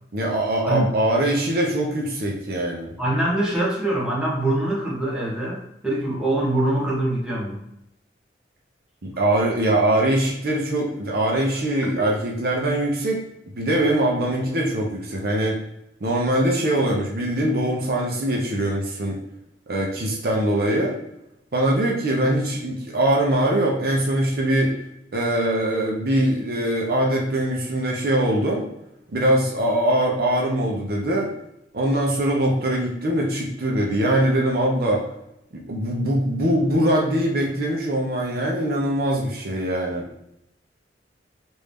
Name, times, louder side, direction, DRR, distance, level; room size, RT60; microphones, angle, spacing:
voice 1, 0.1-2.9 9.0-13.2 13.6-15.6 16.0-19.2 19.7-21.0 21.5-24.7 25.1-28.6 29.1-31.3 31.7-35.0 35.5-40.1, right 1 dB, 55° right, -1 dB, 0.7 m, -22 dB
voice 2, 3.0-7.6 11.8-11.9, right 1 dB, 5° right, -6 dB, 0.9 m, -24 dB
3.2 x 2.6 x 3.4 m, 0.82 s
head